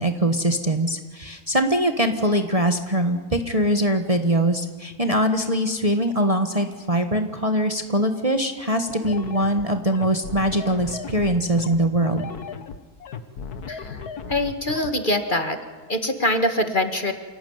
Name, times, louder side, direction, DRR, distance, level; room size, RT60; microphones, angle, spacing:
voice 1, 0.0-12.3, right 1 dB, 25° right, 6 dB, 1.4 m, -22 dB
sound 1, 8.9-14.9, left 6 dB, 85° left, 1.8 m, -36 dB
voice 2, 14.3-15.6 15.9-17.1, left 1 dB, 35° left, 7 dB, 1.8 m, -23 dB
27.0 x 17.5 x 9.5 m, 1.4 s
omnidirectional pair, 1.6 m